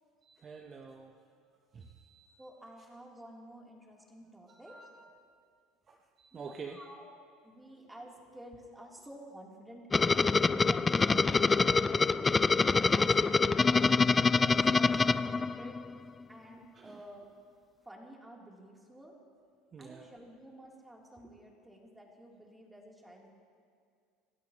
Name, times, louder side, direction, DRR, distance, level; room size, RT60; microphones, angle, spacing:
voice 1, 0.2-1.2 1.7-2.4 4.5-5.1 5.9-6.8 16.8-17.0 19.7-20.1, right 5 dB, 35° right, 4 dB, 1.0 m, -48 dB
voice 2, 2.4-4.8 6.3-12.3 12.7-15.0 15.3-15.8 16.3-17.3 17.8-19.1 19.8-23.3, right 1 dB, 10° right, -2 dB, 3.3 m, -51 dB
sound 1, 9.9-15.9, left 4 dB, 20° left, 0.3 m, -25 dB
28.0 x 13.0 x 3.0 m, 2.2 s
hypercardioid pair, 85°, 0 cm